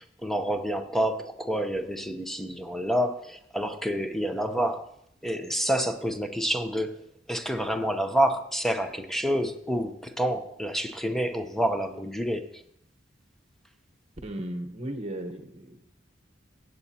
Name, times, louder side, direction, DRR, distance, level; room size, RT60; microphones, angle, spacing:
voice 1, 0.0-4.9 5.2-7.0 7.3-12.6, equal, ahead, 6 dB, 0.7 m, -28 dB
voice 2, 14.2-15.8, right 1 dB, 35° right, 6 dB, 1.0 m, -36 dB
15.5 x 8.0 x 2.8 m, 0.72 s
head